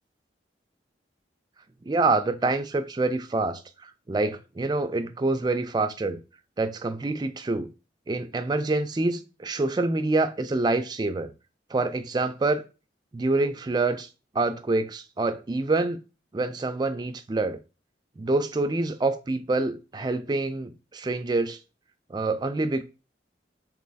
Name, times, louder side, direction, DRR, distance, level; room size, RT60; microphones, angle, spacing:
voice 1, 1.9-3.6 4.1-6.2 6.6-7.7 8.1-11.3 11.7-12.6 13.1-14.1 14.3-16.0 16.3-17.6 18.2-21.6 22.1-22.8, right 2 dB, 25° right, 0.3 m, -26 dB
3.1 x 3.0 x 4.0 m
head